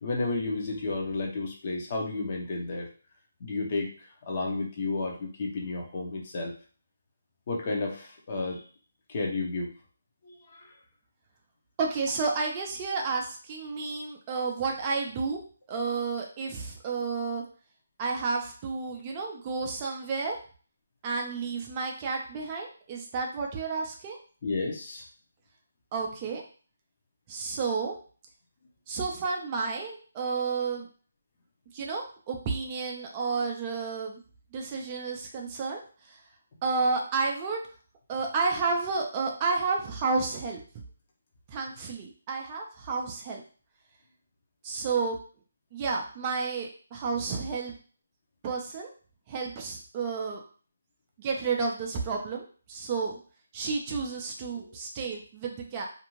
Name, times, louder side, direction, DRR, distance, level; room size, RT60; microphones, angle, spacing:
voice 1, 0.0-2.9 3.4-3.9 4.3-6.5 7.5-8.6 9.1-9.7 10.2-10.7 24.4-25.0 54.6-54.7, left 3 dB, 35° left, 1 dB, 0.7 m, -32 dB
voice 2, 11.8-15.4 15.7-17.4 18.0-20.3 21.0-24.2 25.9-26.4 27.3-27.9 28.9-30.9 31.7-34.2 34.5-36.2 36.6-37.6 38.1-40.6 41.5-43.4 44.6-45.2 45.7-47.7 48.4-48.9 49.3-50.4 51.2-53.2 53.5-55.9, right 4 dB, 20° right, 0 dB, 0.4 m, -31 dB
2.5 x 2.3 x 3.0 m, 0.40 s
hypercardioid pair, 165°, 0 cm